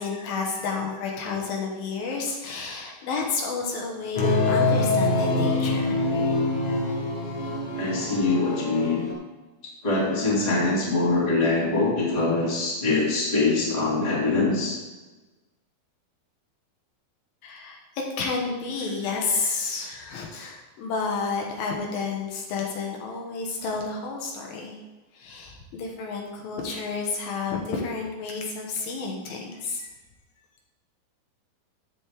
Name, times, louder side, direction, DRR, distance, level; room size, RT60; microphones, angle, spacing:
voice 1, 0.0-6.0 17.4-17.8 18.2-24.8 25.1-29.9, left 4 dB, 75° left, 0 dB, 2.9 m, -30 dB
sound 1, 4.2-9.1, left 2 dB, 55° left, 1.9 m, -25 dB
voice 2, 7.7-9.1 9.8-14.8, left 3 dB, 15° left, -6 dB, 1.9 m, -23 dB
13.5 x 5.3 x 3.4 m, 1.2 s
omnidirectional pair, 4.3 m